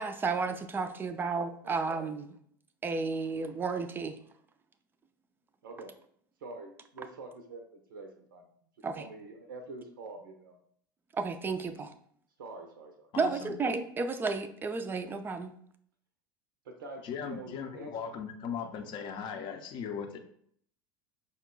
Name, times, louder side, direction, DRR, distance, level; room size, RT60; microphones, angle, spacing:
voice 1, 0.0-2.3 2.8-4.1 8.8-9.1 11.1-11.9 13.2-15.5, right 4 dB, 20° right, 9 dB, 0.4 m, -32 dB
voice 2, 1.6-2.1 5.6-5.9 6.4-8.4 8.9-10.6 12.4-13.1 16.6-17.9, right 3 dB, 70° right, 5 dB, 0.5 m, -46 dB
voice 3, 13.1-13.5 17.0-20.2, left 7 dB, 45° left, 5 dB, 0.6 m, -38 dB
5.0 x 2.2 x 3.7 m, 0.64 s
figure-of-eight pair, 75°, 11 cm